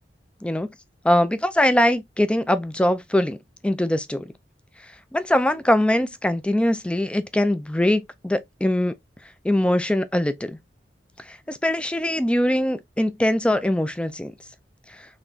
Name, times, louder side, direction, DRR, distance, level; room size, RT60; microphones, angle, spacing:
voice 1, 1.0-3.4 3.6-4.3 5.1-9.0 9.4-10.6 11.3-14.3, left 1 dB, 5° left, 0.4 m, -22 dB
4.1 x 2.9 x 2.7 m
head